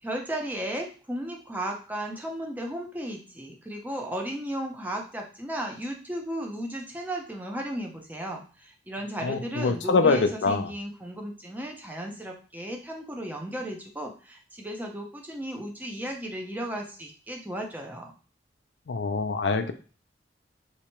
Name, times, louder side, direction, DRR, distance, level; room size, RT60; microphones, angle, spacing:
voice 1, 0.0-18.1, right 1 dB, 10° right, 1 dB, 0.7 m, -35 dB
voice 2, 9.2-10.7 18.9-19.7, left 4 dB, 85° left, 9 dB, 0.5 m, -24 dB
3.3 x 2.9 x 3.0 m, 0.36 s
head